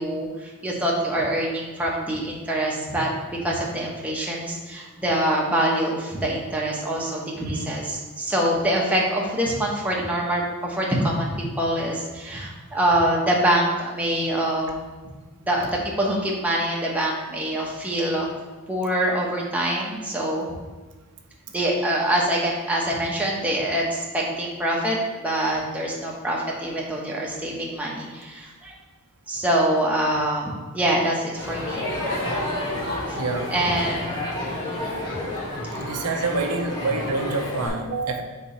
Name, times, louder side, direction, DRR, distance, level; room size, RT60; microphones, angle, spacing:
voice 1, 0.0-14.7 15.4-18.3 18.7-20.5 21.5-28.8 29.3-31.8 33.1-33.2 33.5-34.1 34.4-34.6, right 1 dB, 5° right, -3 dB, 0.8 m, -25 dB
Crowd, 31.4-37.7, left 1 dB, 20° left, 1.3 m, -30 dB
voice 2, 32.7-33.5 35.7-38.2, right 3 dB, 90° right, 3 dB, 0.7 m, -27 dB
4.4 x 4.1 x 5.3 m, 1.3 s
head